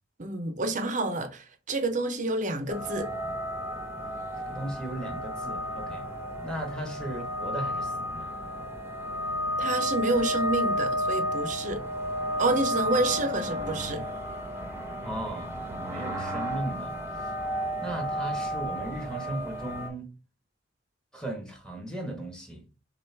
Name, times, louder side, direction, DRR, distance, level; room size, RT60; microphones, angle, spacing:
voice 1, 0.2-3.1 9.6-11.8 12.4-14.1, right 2 dB, 45° right, 0.7 m, -28 dB
sound 1, 2.7-19.9, equal, 15° right, 0.9 m, -32 dB
voice 2, 4.5-6.1 6.4-8.3 15.0-15.6 15.8-17.0 17.8-20.1 21.1-22.6, right 1 dB, 5° left, 1.3 m, -36 dB
6.3 x 2.5 x 3.3 m
head